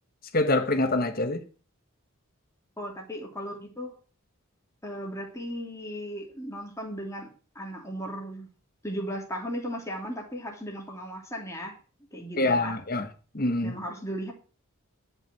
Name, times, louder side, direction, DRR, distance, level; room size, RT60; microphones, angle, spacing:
voice 1, 0.3-1.4 12.4-13.1 13.3-13.8, left 2 dB, 40° left, 1.4 m, -25 dB
voice 2, 2.8-4.0 4.8-7.3 7.5-8.5 8.8-11.8 12.1-12.7 13.6-14.3, equal, 15° left, 3.0 m, -36 dB
11.5 x 6.1 x 7.7 m
head